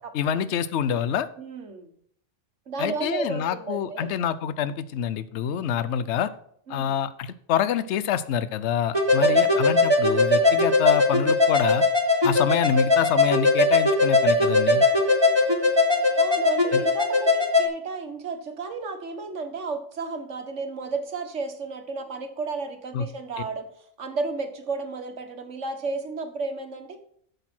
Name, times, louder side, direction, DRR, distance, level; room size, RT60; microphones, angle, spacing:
voice 1, 0.1-1.3 2.8-6.3 6.7-11.8 12.2-14.8 16.7-16.8 22.9-23.0, left 8 dB, 70° left, 14 dB, 0.9 m, -26 dB
voice 2, 1.4-1.9 2.7-4.1 6.7-6.9 9.1-9.6 16.2-27.0, right 4 dB, 75° right, 6 dB, 1.7 m, -33 dB
sound 1, 8.9-17.7, left 2 dB, 20° right, 1.4 m, -20 dB
8.3 x 6.8 x 6.0 m, 0.64 s
omnidirectional pair, 1.3 m